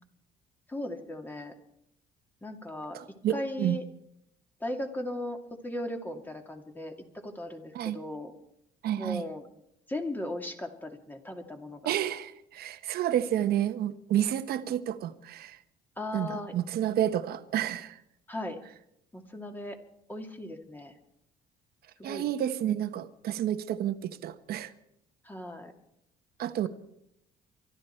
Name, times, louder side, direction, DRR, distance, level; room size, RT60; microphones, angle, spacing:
voice 1, 0.7-1.5 2.4-3.0 3.3-3.8 4.6-8.3 9.0-9.5 9.9-11.9 16.0-16.5 18.3-18.6 19.1-19.8 20.1-20.9 22.0-22.3 25.2-25.7, left 1 dB, 10° left, 4 dB, 2.4 m, -37 dB
voice 2, 2.9-3.8 7.7-8.0 8.8-9.2 11.8-15.6 16.1-18.0 22.0-24.7 26.4-26.7, right 11 dB, 65° right, 10 dB, 1.2 m, -30 dB
24.0 x 12.5 x 4.5 m, 0.78 s
cardioid pair, 110°, 17 cm